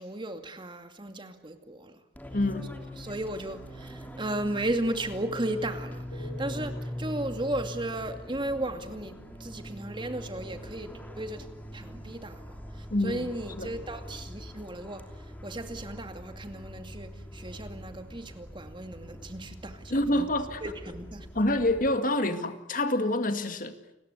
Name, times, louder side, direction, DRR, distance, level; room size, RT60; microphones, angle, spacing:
voice 1, 0.0-2.0 3.0-11.5 11.7-15.0 15.4-20.3 20.6-21.3, right 1 dB, 25° right, 2.4 m, -35 dB
Fixed-wing aircraft airplane, 2.1-21.9, equal, 10° left, 3.1 m, -42 dB
voice 2, 2.3-2.7 12.9-13.3 13.6-13.7 19.9-20.6 21.4-23.8, left 1 dB, 45° left, 2.2 m, -27 dB
sound 1, 6.1-9.5, left 1 dB, 65° left, 7.6 m, -48 dB
30.0 x 21.0 x 8.4 m
head